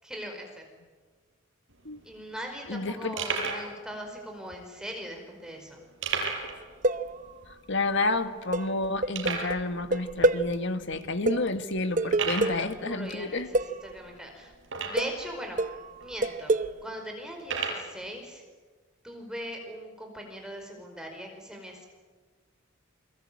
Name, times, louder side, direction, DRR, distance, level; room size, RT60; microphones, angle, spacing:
voice 1, 0.0-0.6 2.0-5.8 12.4-15.6 16.0-16.5 16.8-18.4 19.0-21.9, equal, 5° right, 2 dB, 5.0 m, -40 dB
sound 1, 1.7-1.8 2.0-2.1 2.7-2.8 3.2-3.7 4.4-4.5 6.0-6.6 6.9-7.0 7.4-7.5 8.1-8.2 9.1-9.6 10.4-10.5 11.0-11.2 12.1-12.6 14.6-15.2 16.0-16.1 17.4-17.9, right 5 dB, 65° right, 5.3 m, -32 dB
voice 2, 2.7-3.1 7.7-13.5, left 2 dB, 60° left, 9 dB, 1.7 m, -30 dB
sound 2, 6.5-7.5 8.5-10.5 10.9-11.0 11.3-12.7 13.5-13.9 14.7-15.3 15.6-16.8, right 2 dB, 40° right, 0.8 m, -27 dB
29.0 x 22.0 x 8.6 m, 1.4 s
head